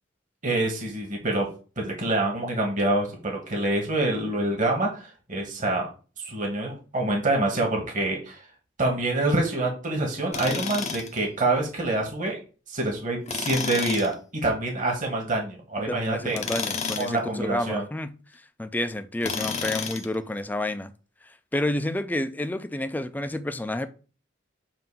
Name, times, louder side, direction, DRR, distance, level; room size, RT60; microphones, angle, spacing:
voice 1, 0.4-1.5 1.8-5.9 6.2-8.4 8.8-12.4 12.7-14.1 14.4-16.4 17.0-17.8, right 2 dB, 45° right, 1.5 m, -26 dB
Tools, 10.3-11.2 13.3-14.1 16.3-17.2 19.2-20.1, left 5 dB, 35° left, 0.7 m, -31 dB
voice 2, 15.9-18.2 18.6-20.9 21.5-23.9, left 1 dB, 10° left, 0.4 m, -29 dB
7.5 x 2.7 x 5.5 m
head